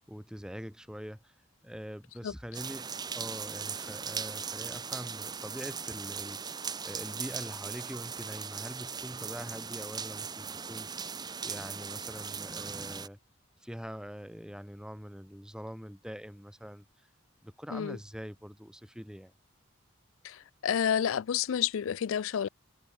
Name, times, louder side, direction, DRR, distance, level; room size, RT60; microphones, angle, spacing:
voice 1, 0.0-1.4 1.6-6.6 6.8-10.9 11.4-13.2 13.6-16.9 17.4-19.3, equal, 5° right, 3.9 m, -43 dB
sound 1, 2.5-13.1, right 6 dB, 20° right, 1.0 m, -39 dB
voice 2, 20.2-22.5, left 8 dB, 70° left, 0.4 m, -30 dB
head